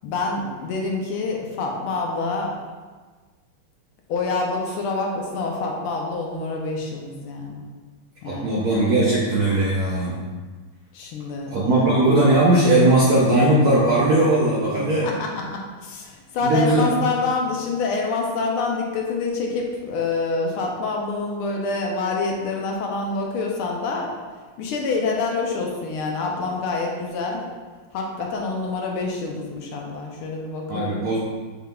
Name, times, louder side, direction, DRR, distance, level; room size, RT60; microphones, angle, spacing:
voice 1, 0.0-2.5 4.1-7.7 8.2-8.4 10.9-12.1 15.0-24.1 24.6-27.4 27.9-31.1, left 3 dB, 75° left, 0 dB, 1.5 m, -27 dB
voice 2, 8.3-10.2 11.5-15.1 16.4-17.0 30.7-31.2, right 1 dB, 65° right, -6 dB, 0.9 m, -18 dB
6.5 x 3.6 x 2.3 m, 1.4 s
omnidirectional pair, 2.4 m